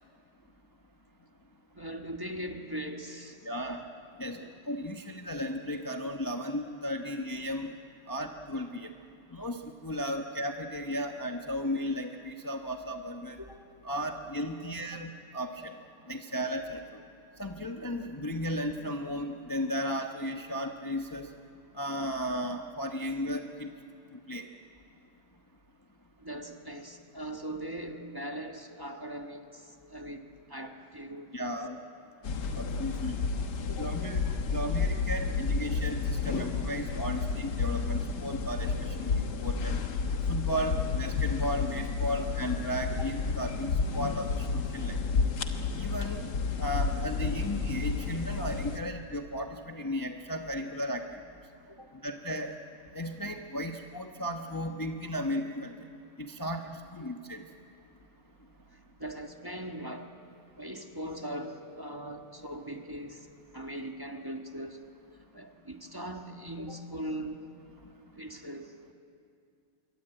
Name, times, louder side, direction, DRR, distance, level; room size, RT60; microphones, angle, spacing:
voice 1, 1.7-3.8 4.3-4.6 8.7-8.9 13.5-13.6 14.6-15.0 23.1-23.2 26.2-31.5 33.7-34.1 39.1-39.3 43.9-44.0 51.7-51.9 58.7-60.3 60.6-64.8 65.3-67.6 68.1-68.8, right 1 dB, 15° right, 4 dB, 1.1 m, -41 dB
voice 2, 3.4-3.8 4.2-4.4 4.7-7.7 8.1-8.9 9.3-13.4 13.8-15.8 16.1-16.8 17.4-21.3 21.8-23.7 24.3-24.4 31.3-31.8 32.5-33.1 33.8-39.8 40.3-45.0 45.8-46.3 46.6-51.2 52.0-52.5 52.9-55.7 56.2-57.4, equal, 20° left, 3 dB, 0.5 m, -35 dB
sound 1, 32.2-48.8, left 4 dB, 55° left, 1.8 m, -31 dB
26.0 x 23.0 x 9.0 m, 2.5 s
omnidirectional pair, 2.2 m